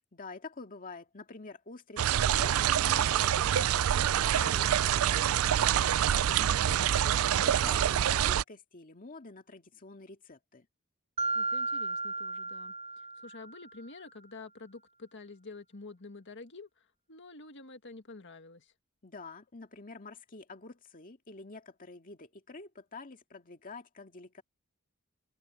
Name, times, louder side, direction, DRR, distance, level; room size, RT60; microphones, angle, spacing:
voice 1, 0.1-5.4 5.7-10.7 19.0-24.4, left 3 dB, 40° left, 2.1 m, -48 dB
sound 1, 2.0-8.4, right 10 dB, 85° right, 0.4 m, -26 dB
voice 2, 5.7-6.3 11.3-18.7, left 3 dB, 60° left, 1.9 m, -49 dB
Mallet percussion, 11.2-13.7, right 2 dB, 30° right, 0.7 m, -34 dB
head